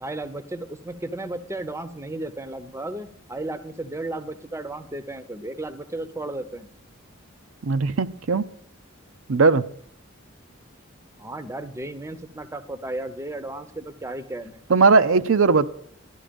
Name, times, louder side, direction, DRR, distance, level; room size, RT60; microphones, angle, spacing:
voice 1, 0.0-6.7 11.2-14.6, right 2 dB, 15° right, 12 dB, 0.7 m, -34 dB
voice 2, 7.6-8.5 9.3-9.6 14.7-15.7, right 4 dB, 80° right, 10 dB, 0.6 m, -18 dB
12.5 x 11.0 x 5.2 m, 0.62 s
head